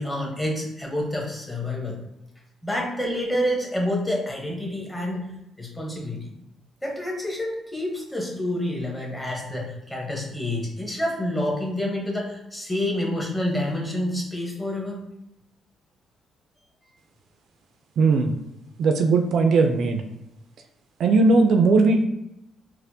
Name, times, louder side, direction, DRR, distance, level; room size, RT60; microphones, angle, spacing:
voice 1, 0.0-2.0 2.6-5.3 5.6-6.3 6.8-15.0, left 1 dB, 15° left, -1 dB, 0.9 m, -28 dB
voice 2, 18.0-18.3 18.8-20.0 21.0-22.0, right 3 dB, 70° right, 5 dB, 0.3 m, -18 dB
4.2 x 2.0 x 2.7 m, 0.85 s
cardioid pair, 90°, 0 cm